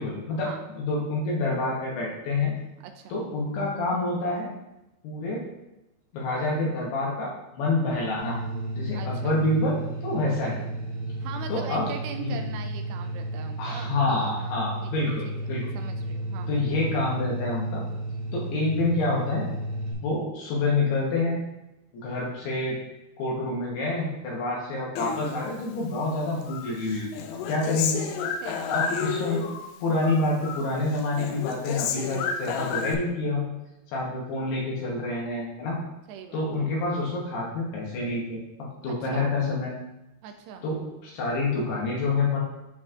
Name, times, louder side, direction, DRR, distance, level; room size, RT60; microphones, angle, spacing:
voice 1, 0.0-2.5 3.1-4.5 5.0-5.4 6.1-8.4 8.8-10.6 11.5-11.9 12.2-12.4 13.6-15.7 16.5-17.8 18.3-19.5 20.0-21.4 21.9-22.8 23.2-27.1 27.5-28.0 28.7-29.5 29.8-33.5 33.9-35.8 36.3-39.7 40.6-42.4, left 2 dB, 70° left, -4 dB, 2.9 m, -27 dB
voice 2, 2.8-3.2 8.9-9.4 11.2-14.9 15.5-16.5 28.4-28.8 36.1-36.7 38.8-39.3 40.2-40.7, right 7 dB, 85° right, 5 dB, 2.4 m, -41 dB
sound 1, 8.2-19.9, right 1 dB, 65° right, 3.9 m, -33 dB
Human voice, 25.0-26.1 26.5-29.7 30.0-30.7 31.0-32.9, left 6 dB, 85° left, 3.0 m, -31 dB
12.0 x 4.1 x 2.5 m, 0.94 s
omnidirectional pair, 5.3 m